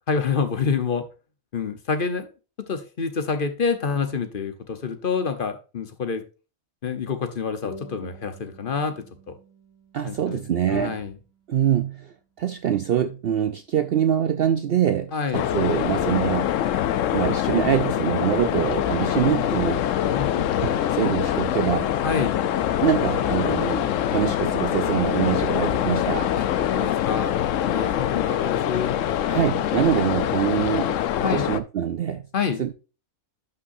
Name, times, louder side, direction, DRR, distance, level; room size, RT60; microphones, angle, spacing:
voice 1, 0.1-1.0 1.5-2.3 2.7-6.2 6.8-9.3 10.0-10.4 10.7-11.1 15.1-15.4 20.1-20.5 22.0-22.4 26.4-26.5 26.7-29.0 31.2-31.4 32.3-32.6, left 5 dB, 40° left, 1.0 m, -27 dB
sound 1, 7.6-12.6, left 1 dB, 90° left, 4.5 m, -49 dB
voice 2, 9.9-11.0 11.5-16.5 17.1-19.9 20.6-21.9 22.8-26.3 29.2-32.3 32.6-32.8, right 9 dB, 65° right, 0.5 m, -24 dB
sound 2, 15.3-31.6, left 11 dB, 70° left, 0.9 m, -24 dB
11.5 x 5.7 x 2.6 m
omnidirectional pair, 1.5 m